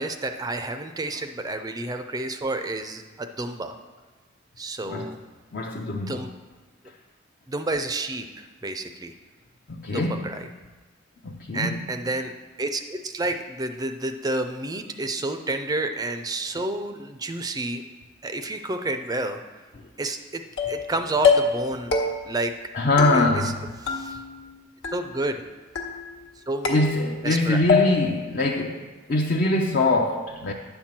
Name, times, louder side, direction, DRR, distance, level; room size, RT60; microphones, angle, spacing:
voice 1, 0.0-3.8 4.6-5.2 6.1-6.3 7.5-9.1 9.9-10.5 11.5-12.3 12.6-17.8 18.2-19.4 20.0-20.4 20.7-21.9 22.2-22.6 23.1-23.4 23.8-24.2 24.9-25.4 26.4-26.7 27.2-27.6, right 2 dB, 20° right, 7 dB, 0.4 m, -30 dB
voice 2, 5.5-6.2 9.7-10.3 11.2-11.8 22.7-23.6 26.7-30.5, left 2 dB, 50° left, 0 dB, 0.6 m, -23 dB
sound 1, 20.6-20.9 21.2-21.6 21.9-22.4 23.0-23.6 23.9-24.5 24.8-25.4 25.7-26.3 26.6-27.3 27.7-28.2, left 5 dB, 70° left, 1.2 m, -25 dB
9.6 x 4.4 x 7.4 m, 1.3 s
head